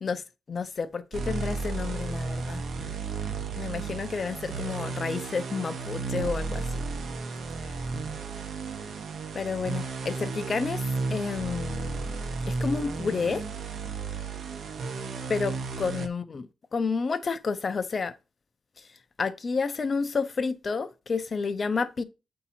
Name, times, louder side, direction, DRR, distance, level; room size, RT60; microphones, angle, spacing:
voice 1, 0.5-2.6 3.6-6.8 9.3-10.8 11.1-12.1 12.5-13.4 15.3-18.1 19.2-22.0, left 5 dB, 35° left, 0.6 m, -30 dB
sound 1, 1.1-16.1, right 4 dB, 60° right, 0.8 m, -33 dB
8.2 x 2.8 x 4.1 m
cardioid pair, 130°, 0 cm